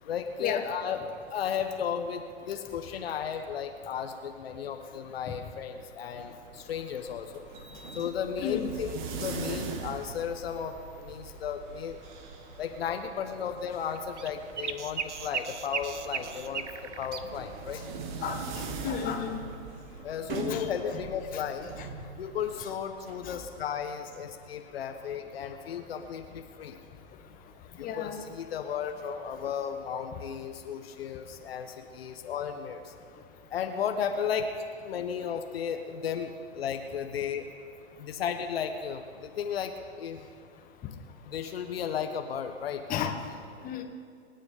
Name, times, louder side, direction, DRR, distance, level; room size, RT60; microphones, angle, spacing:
voice 1, 0.1-1.0 1.3-7.5 7.9-12.0 12.6-16.6 17.0-17.8 20.0-21.7 22.2-26.8 27.8-32.9 33.5-34.5 34.8-37.5 38.0-40.2 41.3-42.8, left 7 dB, 60° left, 6 dB, 1.2 m, -34 dB
sound 1, 6.1-23.1, right 4 dB, 40° right, 1.8 m, -42 dB
sound 2, 13.9-17.2, right 6 dB, 75° right, 1.1 m, -35 dB
voice 2, 18.8-19.4 20.5-20.7 21.3-21.4 23.3-23.4 27.8-28.2 42.9-43.2 43.6-43.8, left 8 dB, 25° left, 4 dB, 1.6 m, -32 dB
27.0 x 9.4 x 5.2 m, 2.2 s
figure-of-eight pair, 115°, 35 cm